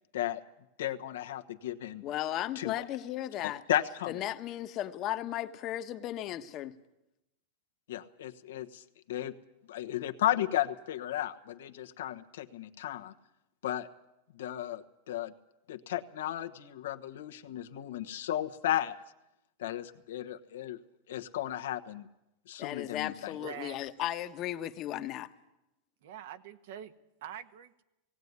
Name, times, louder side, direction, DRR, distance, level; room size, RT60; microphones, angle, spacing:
voice 1, 0.8-2.0 2.5-2.7 3.7-4.2 7.9-9.3 9.7-13.1 13.6-13.9 14.3-15.3 15.7-19.0 19.6-20.8 21.1-22.1 22.5-23.3, left 12 dB, 80° left, 7 dB, 1.2 m, -34 dB
voice 2, 2.0-3.6 4.1-6.8 22.6-25.3, left 13 dB, 40° left, 9 dB, 1.2 m, -35 dB
voice 3, 23.4-23.9 26.0-26.9 27.2-27.8, right 9 dB, 70° right, 10 dB, 1.4 m, -45 dB
18.0 x 17.5 x 9.7 m, 0.92 s
supercardioid pair, 140°, 0 cm